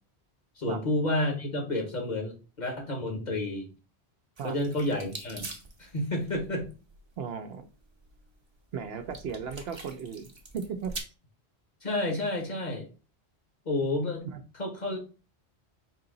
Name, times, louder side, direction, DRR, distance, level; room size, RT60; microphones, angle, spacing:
voice 1, 0.6-3.7 4.4-5.5 5.8-6.7 11.8-12.9 13.6-14.2 14.6-15.0, left 1 dB, 45° left, 2 dB, 1.1 m, -30 dB
sound 1, 4.4-11.0, right 3 dB, 30° right, 0.7 m, -45 dB
voice 2, 7.2-7.7 8.7-11.0 14.2-14.4, right 6 dB, 70° right, 8 dB, 0.8 m, -36 dB
4.5 x 2.8 x 3.8 m, 0.33 s
omnidirectional pair, 1.1 m